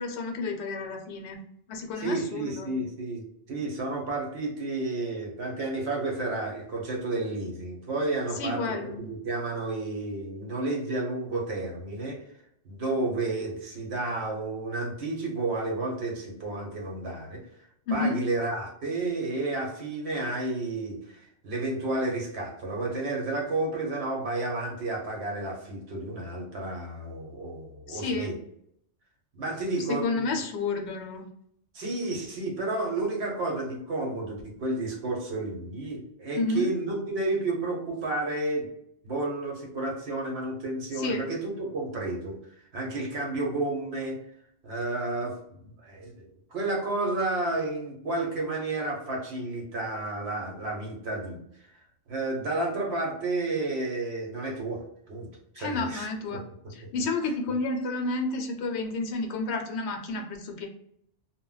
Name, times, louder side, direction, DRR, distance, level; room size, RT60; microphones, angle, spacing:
voice 1, 0.0-1.4 1.7-2.7 8.4-9.1 17.9-18.2 27.9-28.3 30.0-31.3 36.4-36.7 40.9-41.3 55.6-56.4 56.7-60.7, left 3 dB, 75° left, 3 dB, 0.8 m, -30 dB
voice 2, 2.0-12.2 12.6-17.4 17.9-28.3 29.3-30.3 31.7-38.7 39.0-42.4 42.7-44.2 44.6-51.4 52.1-54.8 55.1-55.3 55.5-56.1, right 2 dB, 70° right, -1 dB, 1.0 m, -31 dB
2.2 x 2.1 x 3.8 m, 0.72 s
omnidirectional pair, 1.1 m